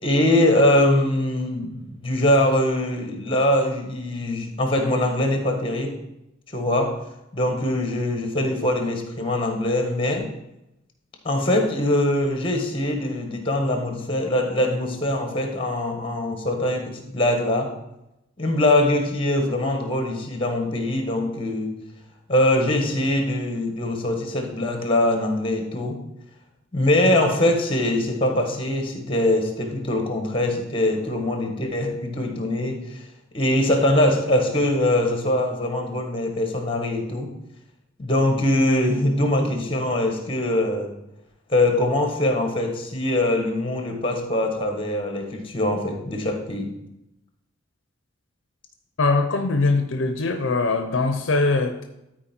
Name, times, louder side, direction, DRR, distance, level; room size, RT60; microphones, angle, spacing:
voice 1, 0.0-5.9 6.5-7.0 7.3-10.3 11.2-17.7 18.4-21.7 22.3-26.0 26.7-33.0 33.3-37.3 38.0-40.9 41.5-46.7, left 1 dB, 25° left, 1.5 m, -22 dB
voice 2, 49.0-51.8, left 3 dB, 70° left, 0.6 m, -22 dB
13.0 x 4.5 x 4.5 m
head